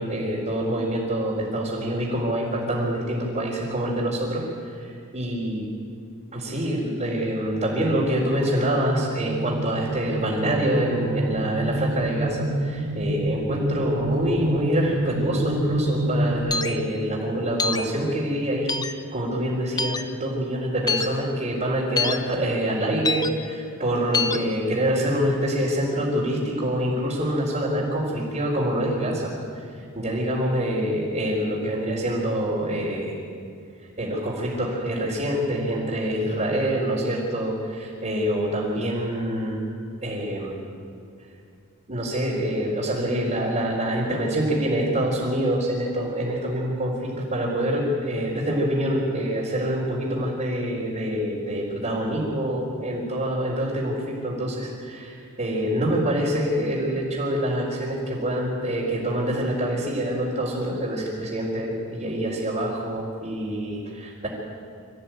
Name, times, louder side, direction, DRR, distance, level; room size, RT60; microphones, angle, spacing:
voice 1, 0.0-5.6 6.3-29.3 29.9-33.2 34.0-39.6 40.0-40.6 41.9-64.3, right 1 dB, 35° right, -7 dB, 4.3 m, -26 dB
sound 1, 8.1-16.4, right 1 dB, 75° right, 2.4 m, -28 dB
sound 2, 16.5-16.7 17.6-17.8 18.7-18.9 19.8-20.0 20.9-21.1 22.0-22.2 23.0-23.3 24.1-24.4, left 4 dB, 20° left, 0.7 m, -24 dB
25.0 x 14.5 x 9.3 m, 2.4 s
head